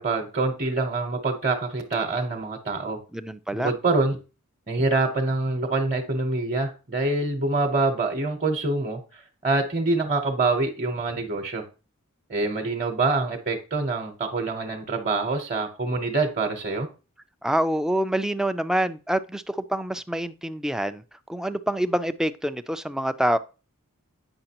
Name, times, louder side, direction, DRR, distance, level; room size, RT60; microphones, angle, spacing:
voice 1, 0.0-3.0 3.5-4.2 4.7-9.0 9.4-11.6 12.3-16.9, right 3 dB, 35° right, 0.9 m, -25 dB
voice 2, 3.1-3.7 17.4-21.0 21.3-23.4, right 1 dB, ahead, 0.3 m, -26 dB
8.8 x 5.8 x 2.9 m
head